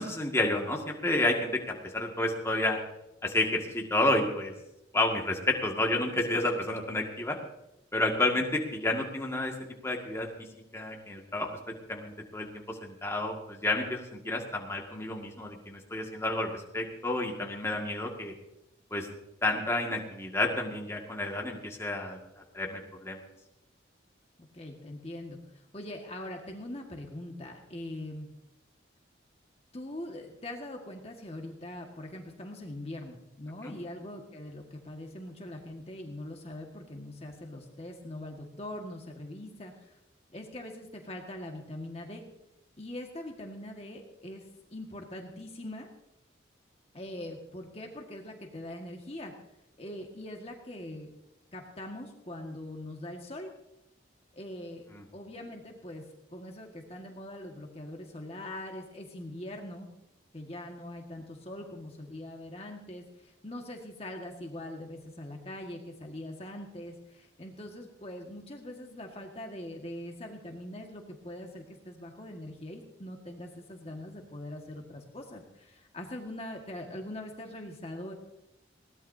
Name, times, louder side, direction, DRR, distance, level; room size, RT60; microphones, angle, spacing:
voice 1, 0.0-2.8 3.2-4.5 4.9-7.4 7.9-9.5 9.8-10.3 10.7-11.5 11.9-18.3 18.9-19.1 19.4-22.2 22.5-23.2 33.6-33.7 54.9-55.0, left 2 dB, 15° left, 0 dB, 1.9 m, -30 dB
voice 2, 24.4-28.3 29.7-40.0 40.3-42.2 42.8-45.9 46.9-49.3 49.8-51.1 51.5-53.5 54.3-54.9 55.1-56.0 56.3-59.9 60.3-78.1, left 1 dB, 30° left, 1 dB, 1.7 m, -42 dB
21.0 x 17.5 x 2.8 m, 0.89 s
head